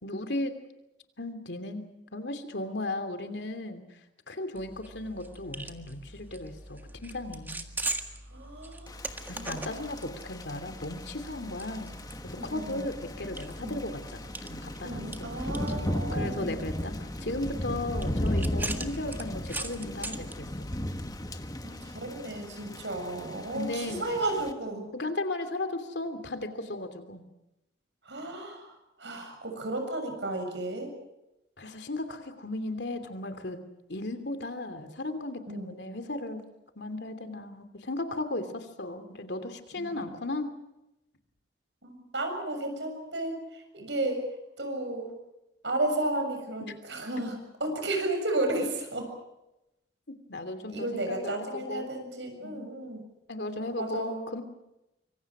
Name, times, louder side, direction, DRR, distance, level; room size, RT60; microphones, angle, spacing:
voice 1, 0.0-0.6 1.2-3.8 4.3-7.7 9.3-11.9 12.2-15.8 16.1-20.5 23.5-24.1 24.9-27.2 31.6-33.6 33.9-36.4 36.8-40.5 50.1-51.9 52.4-52.6 53.3-54.4, left 2 dB, 70° left, 9 dB, 3.0 m, -36 dB
sound 1, 4.6-21.1, right 2 dB, 10° right, 1.7 m, -41 dB
voice 2, 8.3-9.0 9.4-9.9 12.3-12.9 13.6-13.8 14.8-16.6 21.6-24.9 28.0-28.7 29.0-30.9 35.5-35.8 39.8-40.1 41.8-44.3 44.6-45.1 45.6-49.1 50.7-53.0 53.8-54.2, right 2 dB, 80° right, 5 dB, 7.1 m, -33 dB
Thunder / Rain, 8.9-24.5, left 1 dB, 20° left, 1.4 m, -36 dB
25.0 x 24.5 x 6.2 m, 0.91 s
head